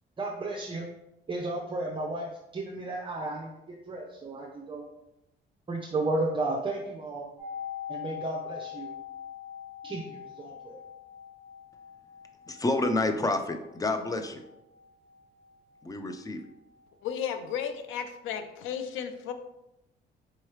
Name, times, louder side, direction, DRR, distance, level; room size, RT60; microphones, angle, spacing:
voice 1, 0.2-0.9 1.3-4.9 5.7-7.3 7.9-8.9 9.8-10.8, right 2 dB, 25° right, -1 dB, 0.6 m, -33 dB
sound 1, 7.4-17.1 17.4-17.5, left 9 dB, 35° left, 1.1 m, -43 dB
voice 2, 12.5-14.4 15.8-16.4, left 2 dB, 20° left, 7 dB, 0.5 m, -29 dB
voice 3, 17.0-19.3, left 8 dB, 90° left, 8 dB, 0.5 m, -34 dB
4.6 x 3.1 x 3.1 m, 0.88 s
cardioid pair, 90°, 20 cm